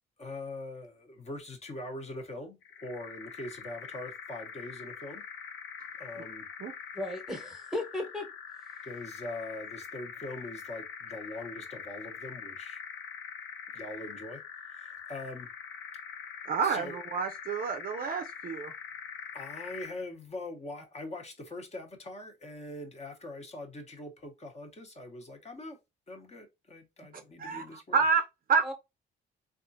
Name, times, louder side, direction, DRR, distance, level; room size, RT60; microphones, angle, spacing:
voice 1, 0.2-5.2 6.0-6.4 8.8-12.8 13.7-14.4 14.7-15.5 16.6-17.0 19.3-25.8 26.1-28.0, left 2 dB, 35° left, 0.9 m, -42 dB
sound 1, 2.6-20.0, left 6 dB, 80° left, 0.6 m, -44 dB
voice 2, 6.9-8.3 28.6-28.7, left 1 dB, ahead, 1.1 m, -35 dB
voice 3, 16.5-18.7 27.4-28.7, right 5 dB, 45° right, 0.4 m, -29 dB
3.5 x 2.4 x 2.6 m
cardioid pair, 90°, 20 cm